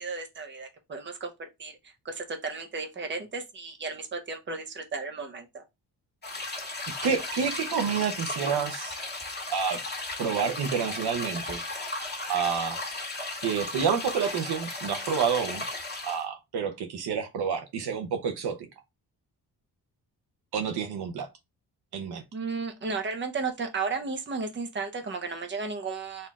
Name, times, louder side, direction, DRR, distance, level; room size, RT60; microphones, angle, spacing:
voice 1, 0.0-1.8 2.0-5.6 22.3-26.3, right 4 dB, 30° right, 0.9 m, -34 dB
sound 1, 6.2-16.2, left 2 dB, 25° left, 1.5 m, -35 dB
voice 2, 7.0-8.9 9.5-9.8 10.2-11.6 12.3-12.8 13.4-15.6 16.0-18.6 20.5-21.3 21.9-22.2, right 6 dB, 75° right, 0.9 m, -29 dB
4.2 x 2.7 x 3.5 m
cardioid pair, 135°, 39 cm